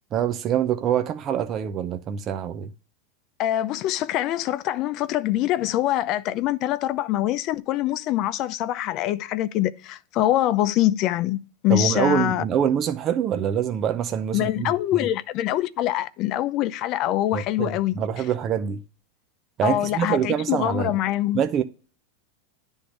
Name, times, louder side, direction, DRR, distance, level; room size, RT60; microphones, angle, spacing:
voice 1, 0.1-2.7 11.7-15.1 17.3-18.8 19.6-20.9 21.3-21.6, right 9 dB, 40° right, 0.6 m, -25 dB
voice 2, 3.4-12.4 14.3-18.0 19.6-21.4, left 14 dB, 50° left, 0.6 m, -24 dB
10.0 x 3.6 x 6.3 m
hypercardioid pair, 105°, 0 cm